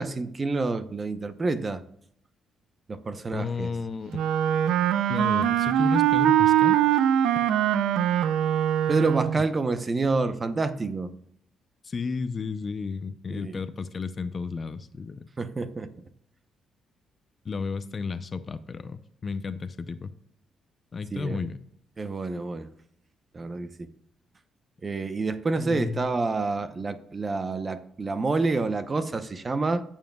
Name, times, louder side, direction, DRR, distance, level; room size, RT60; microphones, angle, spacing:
voice 1, 0.0-1.8 2.9-3.7 8.9-11.1 13.3-13.6 15.4-15.9 21.1-21.4 22.0-22.7 23.3-23.9 24.8-29.8, right 3 dB, 30° right, 0.8 m, -28 dB
voice 2, 3.3-4.2 5.1-7.0 11.8-15.3 17.4-20.1 20.9-21.6 25.6-26.2, left 4 dB, 40° left, 0.6 m, -33 dB
Wind instrument woodwind instrument, 4.1-9.5, right 10 dB, 85° right, 0.5 m, -22 dB
14.5 x 7.3 x 2.3 m
cardioid pair, 90°, 0 cm